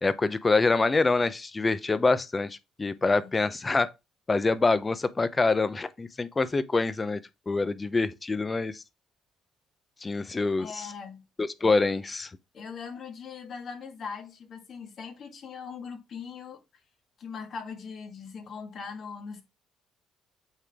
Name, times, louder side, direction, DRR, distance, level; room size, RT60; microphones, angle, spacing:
voice 1, 0.0-3.9 4.3-7.2 7.5-8.8 10.0-10.9 11.4-12.3, left 3 dB, 25° left, 0.7 m, -25 dB
voice 2, 10.6-11.2 12.5-16.6 17.2-19.4, left 5 dB, 55° left, 1.9 m, -40 dB
8.0 x 3.9 x 3.6 m
cardioid pair, 90°, 0 cm